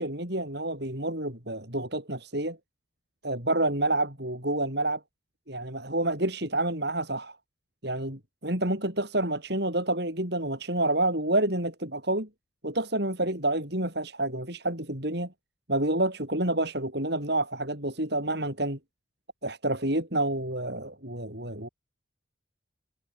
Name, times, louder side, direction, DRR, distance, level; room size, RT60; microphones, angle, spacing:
voice 1, 0.0-2.6 3.2-5.0 5.5-7.4 7.8-12.3 12.6-15.3 15.7-18.8 19.4-21.7, right 1 dB, 55° right, 7.5 m, -28 dB
head